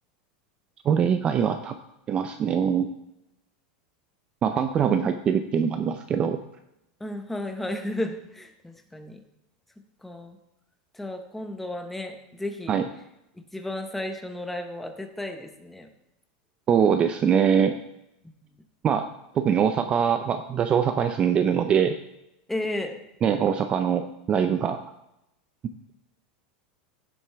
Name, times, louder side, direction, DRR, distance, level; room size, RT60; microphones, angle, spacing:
voice 1, 0.8-1.8 2.1-2.9 4.4-6.4 12.7-12.8 16.7-17.7 18.8-19.1 19.3-22.0 23.2-24.8, right 7 dB, 20° right, 8 dB, 0.4 m, -23 dB
voice 2, 7.0-9.2 10.0-10.4 10.9-12.8 13.3-15.9 18.4-18.5 22.5-23.0, left 1 dB, 5° left, 5 dB, 0.8 m, -33 dB
15.5 x 7.7 x 3.4 m, 0.87 s
supercardioid pair, 165°, 5 cm